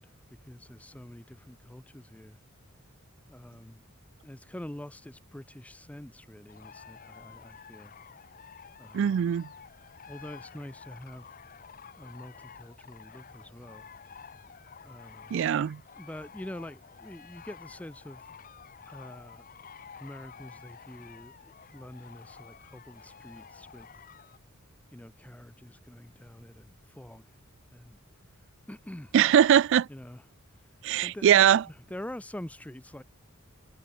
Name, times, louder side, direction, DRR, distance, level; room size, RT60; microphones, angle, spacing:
voice 1, 0.0-2.4 3.3-3.8 4.2-8.0 8.8-9.2 10.1-11.3 12.0-13.9 14.8-15.4 16.0-18.3 18.9-19.4 20.0-23.9 24.9-27.2 27.7-28.0 28.7-29.1 29.9-30.2 30.6-33.0, left 1 dB, 5° left, 0.5 m, -45 dB
sound 1, 6.5-24.4, left 7 dB, 40° left, 0.8 m, -50 dB
voice 2, 8.9-9.5 15.3-15.8 29.1-29.9 30.8-31.6, right 9 dB, 60° right, 0.3 m, -21 dB
head